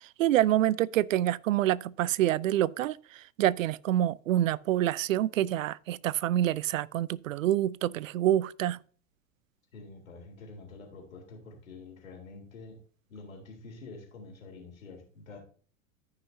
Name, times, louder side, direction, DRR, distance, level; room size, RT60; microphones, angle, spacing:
voice 1, 0.0-8.8, right 13 dB, 75° right, 0.5 m, -27 dB
voice 2, 9.7-12.8 13.1-15.4, left 3 dB, 80° left, 3.5 m, -47 dB
14.5 x 5.7 x 2.7 m
hypercardioid pair, 95°, 40 cm